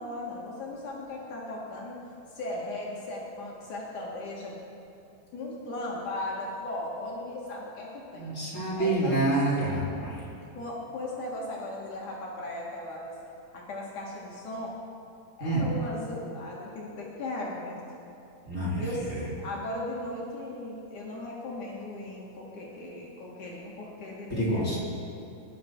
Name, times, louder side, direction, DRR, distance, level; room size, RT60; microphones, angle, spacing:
voice 1, 0.0-4.6 5.3-8.4 8.8-9.4 10.6-13.2 13.5-14.8 15.4-17.8 18.8-19.1 19.4-24.8, left 1 dB, 65° left, -4 dB, 3.5 m, -37 dB
voice 2, 8.1-10.2 15.4-15.7 18.4-18.8 24.3-24.8, right 2 dB, 20° left, -9 dB, 4.8 m, -27 dB
24.0 x 11.5 x 4.7 m, 2.8 s
omnidirectional pair, 3.9 m